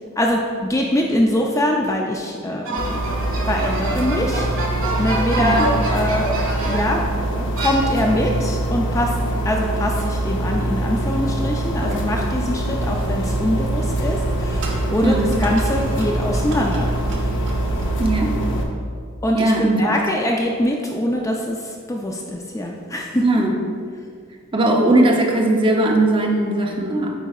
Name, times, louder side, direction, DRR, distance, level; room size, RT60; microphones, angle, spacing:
voice 1, 0.2-3.0 3.4-4.5 5.0-9.2 9.4-15.1 15.4-16.9 19.2-19.5 19.8-23.3, left 1 dB, 15° left, 0 dB, 0.4 m, -23 dB
sound 1, 2.7-7.1 7.6-8.3, right 2 dB, 90° right, 1.3 m, -27 dB
sound 2, 2.8-18.6, right 1 dB, 65° left, 0.7 m, -24 dB
sound 3, 11.6-18.2, right 1 dB, 60° right, 0.9 m, -31 dB
voice 2, 15.0-15.3 18.0-18.3 19.3-19.8 23.2-23.5 24.5-27.1, right 1 dB, 25° right, 0 dB, 0.6 m, -18 dB
8.9 x 4.5 x 2.3 m, 2.1 s
head